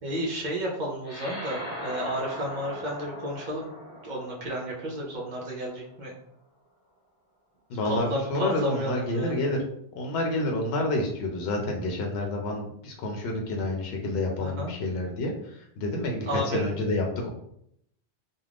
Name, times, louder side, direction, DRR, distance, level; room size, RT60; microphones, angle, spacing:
voice 1, 0.0-3.7 4.0-6.1 7.8-9.4 14.4-14.7 16.2-16.7, equal, 50° right, -3 dB, 0.7 m, -32 dB
sound 1, 1.0-5.8, equal, 25° left, 1.4 m, -40 dB
voice 2, 7.7-9.6 10.0-15.3 15.8-16.3 16.5-17.3, left 1 dB, 70° left, 1 dB, 0.8 m, -28 dB
2.4 x 2.3 x 3.3 m, 0.72 s
omnidirectional pair, 1.1 m